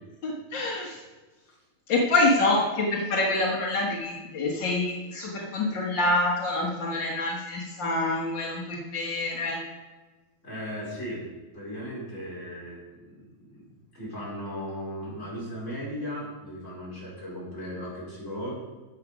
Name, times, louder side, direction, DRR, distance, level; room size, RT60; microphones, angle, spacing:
voice 1, 0.2-1.0 1.9-9.6, left 2 dB, 60° left, -2 dB, 1.1 m, -26 dB
voice 2, 10.4-11.2 11.5-18.5, equal, 20° left, -7 dB, 4.5 m, -37 dB
12.5 x 7.4 x 5.1 m, 1.3 s
omnidirectional pair, 4.2 m